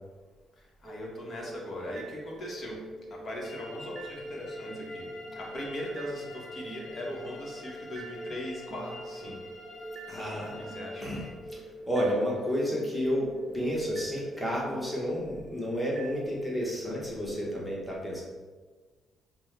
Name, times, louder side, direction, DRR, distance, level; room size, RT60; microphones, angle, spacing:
voice 1, 0.8-2.7 3.1-5.1 5.4-9.4 10.7-11.1, left 1 dB, 45° left, -3 dB, 1.1 m, -39 dB
sound 1, 0.8-16.3, right 1 dB, 35° right, 0.6 m, -44 dB
sound 2, 3.4-11.3, left 2 dB, 60° left, 0.8 m, -48 dB
voice 2, 10.1-10.7 11.0-11.6 11.9-13.3 13.5-18.2, equal, 5° left, -4 dB, 1.1 m, -31 dB
5.2 x 2.2 x 3.3 m, 1.4 s
cardioid pair, 90°, 0 cm